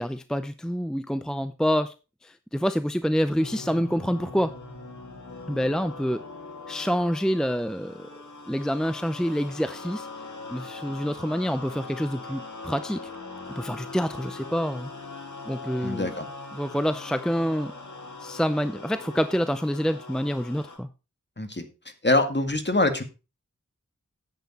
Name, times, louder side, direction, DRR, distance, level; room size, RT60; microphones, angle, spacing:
voice 1, 0.0-1.9 2.2-4.5 5.5-6.2 6.7-8.1 8.5-10.1 10.5-13.1 13.6-14.9 15.5-16.1 16.5-17.7 18.2-20.9, equal, ahead, 0.6 m, -27 dB
sound 1, 3.4-20.8, left 3 dB, 80° left, 2.5 m, -41 dB
voice 2, 15.8-16.3 21.4-21.7 22.0-23.0, left 2 dB, 35° left, 1.9 m, -24 dB
10.5 x 8.3 x 4.3 m
wide cardioid pair, 45°, 30 cm